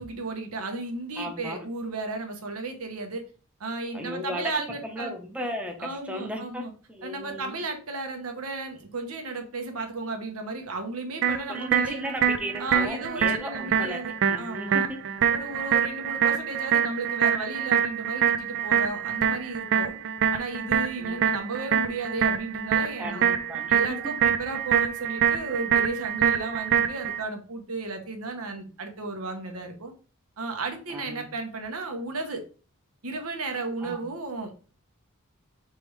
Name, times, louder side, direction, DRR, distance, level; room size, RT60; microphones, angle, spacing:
voice 1, 0.0-3.2 3.6-5.1 5.8-6.7 7.0-12.0 12.6-14.9 15.3-19.9 20.3-23.3 23.7-29.9 30.4-32.4 33.0-34.6, right 3 dB, 75° right, 5 dB, 1.0 m, -34 dB
voice 2, 1.2-1.6 3.9-4.5 4.8-7.6 11.5-14.0 14.3-15.0 21.0-21.3 23.0-23.8 30.9-31.3 33.8-34.0, equal, 5° right, 3 dB, 0.8 m, -36 dB
sound 1, 11.2-27.2, right 8 dB, 55° right, 0.4 m, -25 dB
3.4 x 3.1 x 4.7 m, 0.38 s
head